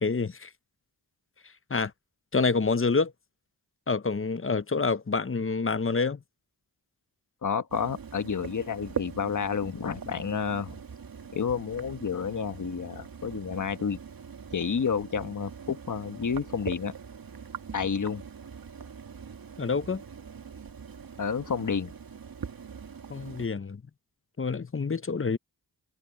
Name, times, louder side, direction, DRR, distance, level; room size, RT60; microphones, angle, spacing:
voice 1, 0.0-0.5 1.7-1.9 2.3-3.1 3.9-6.2 19.6-20.0 23.1-23.8 24.4-25.4, left 4 dB, 30° left, 1.0 m, -27 dB
voice 2, 7.4-10.8 11.3-14.0 14.5-16.9 17.7-18.2 21.2-21.9, left 6 dB, 50° left, 1.4 m, -30 dB
sound 1, 7.7-23.5, right 7 dB, 60° right, 1.8 m, -42 dB
cardioid pair, 45°, 40 cm